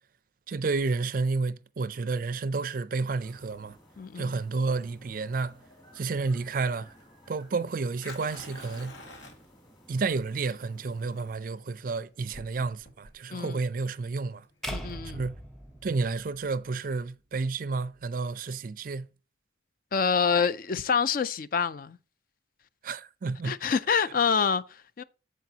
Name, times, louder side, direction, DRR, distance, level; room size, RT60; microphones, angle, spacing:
voice 1, 0.5-3.8 4.2-5.6 5.9-6.9 7.3-9.0 9.9-14.5 15.1-15.4 15.8-19.1 22.8-23.6, right 4 dB, 45° right, 0.4 m, -30 dB
sound 1, 3.2-11.3, equal, 25° left, 2.3 m, -57 dB
voice 2, 4.0-4.4 13.3-13.6 14.7-15.3 19.9-22.0 23.4-25.0, left 6 dB, 45° left, 0.4 m, -27 dB
Fire, 4.9-16.0, left 2 dB, 80° left, 1.9 m, -51 dB
sound 2, 14.6-16.9, equal, ahead, 0.8 m, -40 dB
14.0 x 4.7 x 2.8 m
head